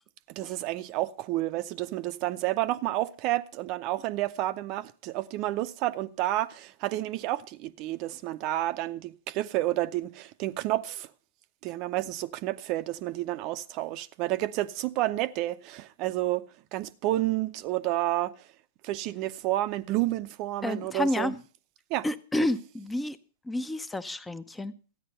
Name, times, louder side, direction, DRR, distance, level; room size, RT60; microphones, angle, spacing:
voice 1, 0.3-11.1 11.6-16.4 16.7-18.3 18.8-21.3 21.9-22.1, right 16 dB, 40° right, 0.6 m, -30 dB
voice 2, 20.6-21.3 22.0-23.2 23.5-24.7, left 1 dB, 10° left, 0.6 m, -30 dB
13.5 x 9.4 x 5.5 m
hypercardioid pair, 110°, 0 cm